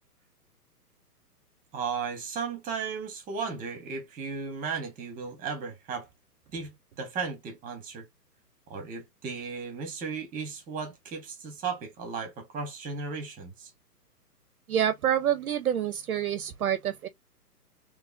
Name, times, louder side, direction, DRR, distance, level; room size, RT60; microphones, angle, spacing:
voice 1, 1.7-6.1 6.5-8.0 8.7-13.7, right 5 dB, 15° right, 1.5 m, -35 dB
voice 2, 14.7-17.1, right 10 dB, 60° right, 0.9 m, -27 dB
3.6 x 3.4 x 3.4 m
figure-of-eight pair, 125°, 48 cm